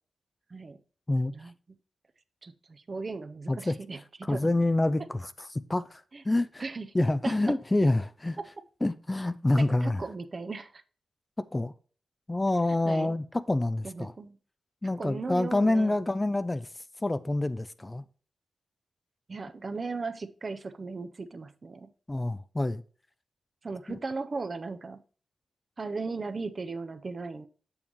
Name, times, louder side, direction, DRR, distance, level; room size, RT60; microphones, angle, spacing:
voice 1, 2.4-4.0 4.3-4.5 6.6-6.9 7.2-7.3 9.6-10.7 12.9-13.2 13.8-14.4 15.0-16.0 19.3-21.9 23.6-25.0 25.8-27.5, right 4 dB, 45° right, 0.6 m, -37 dB
voice 2, 3.5-6.6 6.9-8.4 8.8-10.1 11.4-11.7 12.3-14.1 14.8-16.7 17.0-18.0 22.1-22.8 23.9-24.0, left 2 dB, 20° left, 0.4 m, -27 dB
7.1 x 7.0 x 3.0 m
cardioid pair, 80°, 0 cm